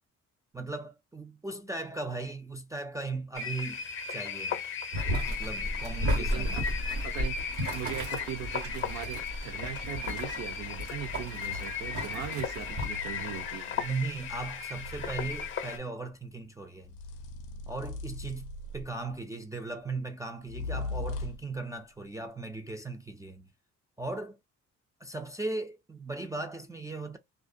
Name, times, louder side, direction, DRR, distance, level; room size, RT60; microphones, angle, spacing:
voice 1, 0.5-3.8 4.1-4.6 5.3-6.6 13.7-17.0 17.7-23.5 24.0-24.4 25.0-27.2, right 3 dB, 10° right, 0.3 m, -37 dB
sound 1, 3.3-15.8, left 6 dB, 40° left, 0.6 m, -36 dB
Boiling, 4.9-12.9, equal, 75° right, 1.2 m, -34 dB
voice 2, 6.2-6.6 7.0-13.7, right 10 dB, 60° right, 0.7 m, -40 dB
sound 2, 11.4-11.7 12.6-15.6 16.8-19.1 20.5-21.6, left 2 dB, 85° left, 0.5 m, -40 dB
2.5 x 2.1 x 2.5 m
cardioid pair, 90°, 30 cm